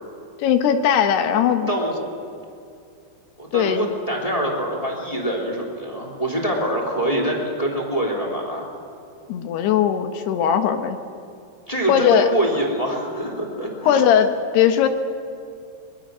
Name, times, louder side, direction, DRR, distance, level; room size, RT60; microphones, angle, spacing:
voice 1, 0.4-1.7 3.5-3.9 9.3-11.0 11.9-12.3 13.8-14.9, left 8 dB, 85° left, 8 dB, 3.3 m, -19 dB
voice 2, 1.7-2.0 3.4-8.6 11.7-13.9, right 1 dB, 10° left, -1 dB, 2.5 m, -25 dB
23.0 x 20.0 x 6.3 m, 2.5 s
omnidirectional pair, 4.6 m